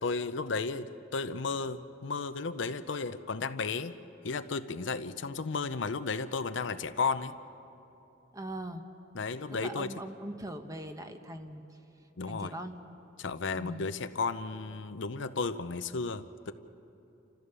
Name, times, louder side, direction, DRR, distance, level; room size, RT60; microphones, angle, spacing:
voice 1, 0.0-3.9 4.2-7.4 9.1-9.9 12.2-12.5 13.2-16.5, left 4 dB, 65° left, 11 dB, 0.7 m, -34 dB
voice 2, 8.3-8.8 9.5-11.6 12.2-12.8 13.5-13.9, right 1 dB, 20° right, 6 dB, 1.0 m, -41 dB
29.5 x 14.5 x 6.8 m, 2.9 s
head